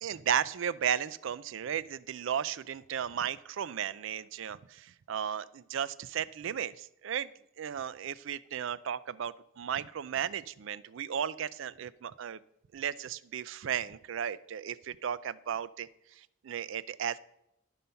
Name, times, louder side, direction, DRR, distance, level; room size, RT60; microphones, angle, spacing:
voice 1, 0.0-7.3 7.6-12.4 12.7-15.9 16.2-17.2, right 8 dB, 60° right, 18 dB, 0.4 m, -35 dB
11.5 x 5.4 x 5.6 m, 0.83 s
head